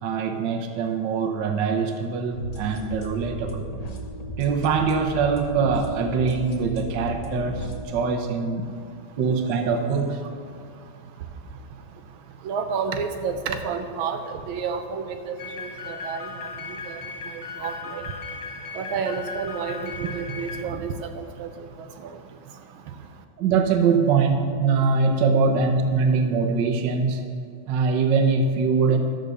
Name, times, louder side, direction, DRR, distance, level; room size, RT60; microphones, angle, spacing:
voice 1, 0.0-3.7 4.4-8.7 9.2-10.2 23.4-27.4 27.7-29.0, right 5 dB, 65° right, 6 dB, 1.5 m, -23 dB
sound 1, 2.3-7.8, right 1 dB, 35° left, 0.6 m, -36 dB
voice 2, 12.4-14.2 14.5-16.3 16.9-17.0 17.6-18.0 18.7-21.5 22.0-22.1, right 6 dB, 85° right, 6 dB, 1.6 m, -30 dB
sound 2, 15.4-20.6, left 4 dB, 85° left, 1.8 m, -37 dB
12.5 x 6.6 x 6.7 m, 2.3 s
omnidirectional pair, 2.2 m